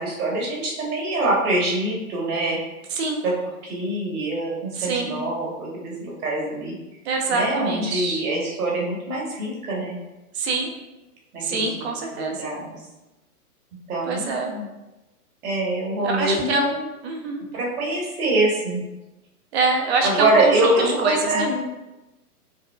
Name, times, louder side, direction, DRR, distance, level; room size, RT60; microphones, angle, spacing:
voice 1, 0.0-2.6 3.2-3.3 3.6-6.7 7.3-10.0 11.3-11.9 12.1-12.8 13.9-14.7 15.4-16.7 17.5-18.8 20.0-21.6, right 2 dB, 70° right, -3 dB, 1.4 m, -24 dB
voice 2, 4.8-5.1 7.1-8.2 10.3-10.7 11.4-12.6 14.1-14.6 16.0-17.4 19.5-20.7 21.0-21.5, right 3 dB, 45° right, 2 dB, 0.6 m, -25 dB
4.8 x 2.0 x 2.3 m, 1.0 s
hypercardioid pair, 140°, 47 cm